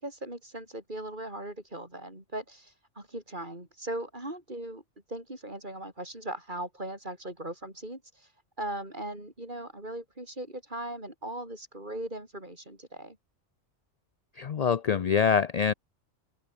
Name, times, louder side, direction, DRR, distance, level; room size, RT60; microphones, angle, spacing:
voice 1, 0.0-4.8 5.1-8.3 8.6-13.2, right 1 dB, 40° right, 6.2 m, -39 dB
voice 2, 14.4-15.7, left 7 dB, 50° left, 0.5 m, -25 dB
open air
omnidirectional pair, 1.2 m